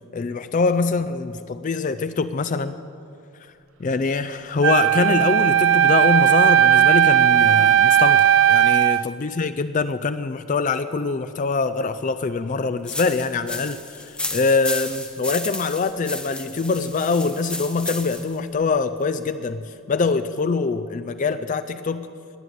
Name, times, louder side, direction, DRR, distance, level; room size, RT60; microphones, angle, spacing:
voice 1, 0.1-2.7 3.8-22.1, left 4 dB, 35° left, 12 dB, 0.3 m, -24 dB
Wind instrument woodwind instrument, 4.6-9.1, right 10 dB, 60° right, 0.5 m, -16 dB
sound 1, 12.9-18.4, left 2 dB, 5° left, 0.7 m, -33 dB
19.0 x 6.7 x 9.2 m, 2.5 s
head